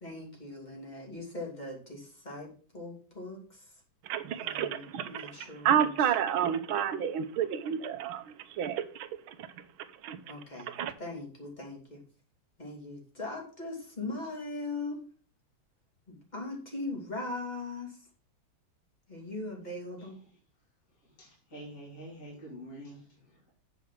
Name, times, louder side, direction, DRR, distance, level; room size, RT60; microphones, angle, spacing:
voice 1, 0.0-3.7 4.4-4.8 5.1-5.7 10.3-10.7 11.0-12.0 12.6-15.1 16.1-18.0 19.1-20.2, left 2 dB, 20° left, -1 dB, 2.9 m, -40 dB
voice 2, 4.0-9.6 10.0-10.2 10.6-10.9, right 9 dB, 85° right, 10 dB, 1.7 m, -30 dB
voice 3, 21.2-23.5, right 1 dB, 40° left, -4 dB, 3.3 m, -47 dB
8.3 x 4.9 x 5.8 m, 0.41 s
omnidirectional pair, 2.2 m